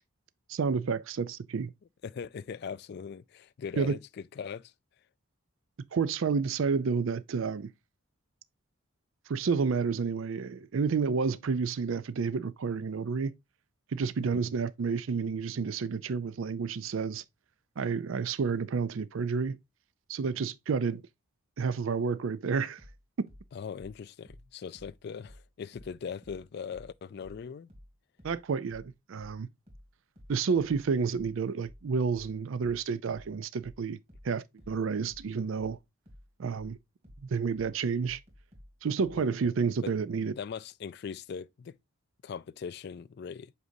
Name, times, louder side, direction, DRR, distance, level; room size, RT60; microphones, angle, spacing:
voice 1, 0.5-1.7 3.8-3.9 5.9-7.7 9.3-13.3 13.9-17.2 17.8-19.6 20.1-21.0 21.6-22.8 23.2-23.3 28.2-29.5 30.3-34.0 34.2-35.8 36.4-36.8 37.3-38.2 38.8-40.3, right 5 dB, 65° right, 0.4 m, -30 dB
voice 2, 2.0-4.7 14.3-14.5 23.5-27.7 39.1-39.3 39.8-39.9 40.3-41.8 42.2-43.5, left 6 dB, 50° left, 0.3 m, -40 dB
sound 1, 22.8-26.0 26.2-39.3, equal, 30° right, 2.3 m, -53 dB
8.0 x 5.0 x 2.6 m
head